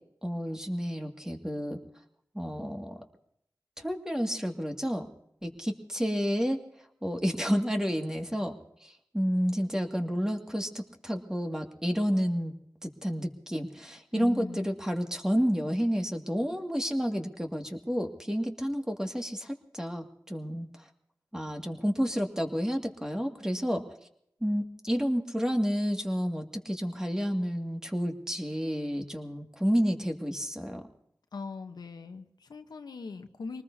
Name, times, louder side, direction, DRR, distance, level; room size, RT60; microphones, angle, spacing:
voice 1, 0.2-1.8 2.3-3.0 3.8-5.1 5.4-6.6 7.0-8.5 8.8-12.5 12.8-20.7 21.3-23.8 24.4-30.8, equal, 10° right, 3 dB, 2.2 m, -30 dB
voice 2, 14.1-14.7 31.3-33.6, left 4 dB, 85° left, 7 dB, 1.1 m, -40 dB
24.5 x 19.5 x 2.8 m, 0.73 s
cardioid pair, 50°, 7 cm